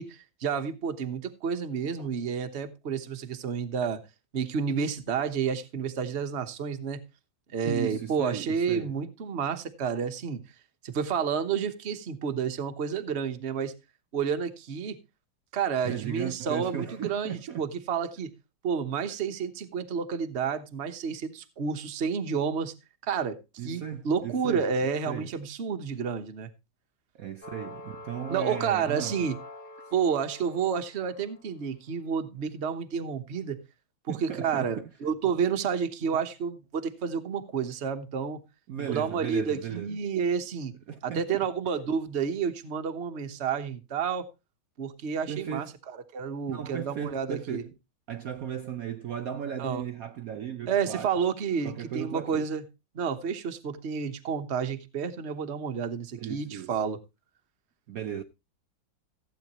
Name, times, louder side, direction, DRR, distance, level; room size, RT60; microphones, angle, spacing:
voice 1, 0.0-4.0 4.3-7.0 7.5-10.4 10.8-13.7 14.1-15.0 15.5-18.3 18.6-22.7 23.0-23.4 23.6-26.5 28.3-29.3 29.9-33.6 34.1-38.4 38.8-40.7 41.0-44.3 44.8-45.7 46.1-47.6 49.6-49.8 50.7-52.6 52.9-57.0, right 6 dB, 40° right, 1.2 m, -30 dB
voice 2, 7.6-8.9 15.8-17.7 23.6-24.7 25.1-25.3 27.1-29.2 34.1-34.9 38.7-40.0 40.9-41.5 45.3-45.8 46.5-47.7 48.1-51.3 51.6-52.5 56.2-56.8 57.9-58.2, right 9 dB, 65° right, 0.9 m, -36 dB
sound 1, 27.4-31.5, left 2 dB, 30° left, 2.0 m, -45 dB
15.0 x 9.0 x 3.0 m
omnidirectional pair, 2.1 m